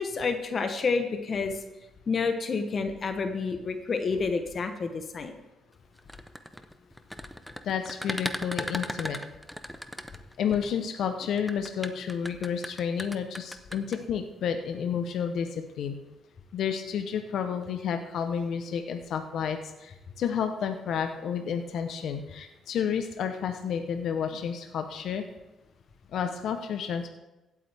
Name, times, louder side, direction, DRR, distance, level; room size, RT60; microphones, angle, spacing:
voice 1, 0.0-1.6 2.1-5.3, left 4 dB, 45° left, 7 dB, 1.0 m, -29 dB
sound 1, 6.0-10.7 11.4-14.0, equal, ahead, 0.7 m, -36 dB
voice 2, 7.6-9.2 10.4-16.0 16.5-25.2 26.1-27.1, left 7 dB, 70° left, 6 dB, 0.8 m, -31 dB
16.5 x 8.4 x 3.5 m, 1.0 s
cardioid pair, 90°, 0 cm